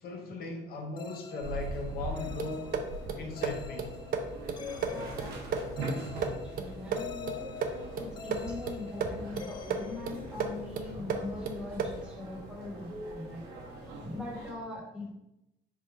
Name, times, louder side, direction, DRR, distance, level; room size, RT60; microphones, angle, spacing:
voice 1, 0.0-2.7 3.2-3.9, left 3 dB, 65° left, 2 dB, 0.7 m, -38 dB
sound 1, 1.0-10.8, left 7 dB, 25° left, 0.3 m, -46 dB
sound 2, 1.4-14.5, right 2 dB, 90° right, 0.9 m, -42 dB
sound 3, 2.4-12.1, right 5 dB, 60° right, 0.5 m, -36 dB
voice 2, 4.6-7.5 8.0-13.4 14.0-15.1, left 2 dB, 5° right, -4 dB, 1.2 m, -42 dB
3.6 x 2.4 x 4.4 m, 0.88 s
cardioid pair, 110°, 17 cm